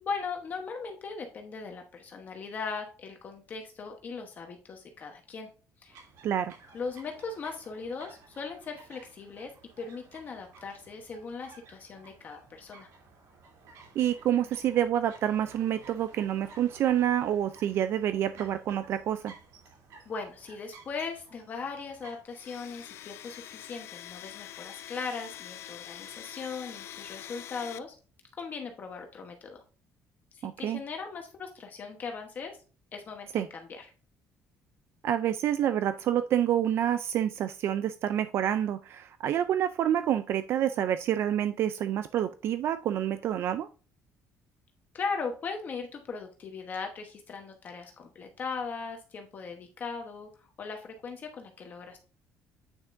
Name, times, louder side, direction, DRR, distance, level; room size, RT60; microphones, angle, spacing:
voice 1, 0.0-5.5 5.8-6.0 6.7-9.5 9.8-12.9 20.1-27.9 28.4-29.6 30.3-32.6 32.9-33.9 44.9-52.0, left 5 dB, 35° left, 3 dB, 1.1 m, -39 dB
sound 1, 5.9-22.2, right 3 dB, 80° right, 3.0 m, -54 dB
voice 2, 6.2-6.5 14.0-19.3 30.4-30.8 33.3-33.5 35.0-43.7, right 10 dB, 50° right, 11 dB, 0.4 m, -28 dB
Domestic sounds home sounds, 22.3-27.8, left 12 dB, 55° left, 0.5 m, -45 dB
8.9 x 5.8 x 2.6 m, 0.36 s
cardioid pair, 165°, 5 cm